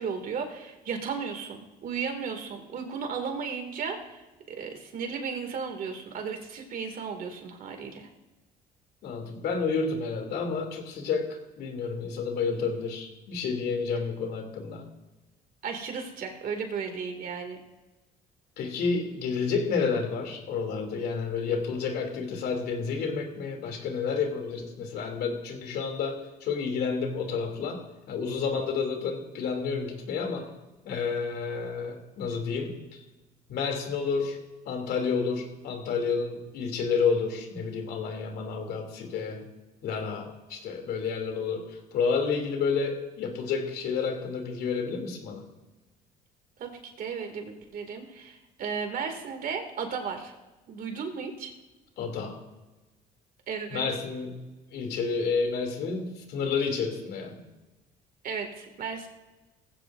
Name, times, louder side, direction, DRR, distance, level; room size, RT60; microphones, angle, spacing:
voice 1, 0.0-8.1 15.6-17.6 46.6-50.3 50.7-51.5 53.5-53.8 58.2-59.1, right 6 dB, 55° right, 4 dB, 2.5 m, -35 dB
voice 2, 9.0-11.3 11.6-14.8 18.6-27.8 28.1-30.5 30.8-32.7 33.5-34.4 34.6-39.4 39.8-45.4 52.0-52.4 53.7-54.4 54.7-57.4, left 5 dB, 75° left, 3 dB, 3.0 m, -30 dB
19.0 x 15.5 x 2.7 m, 1.1 s
cardioid pair, 110°, 17 cm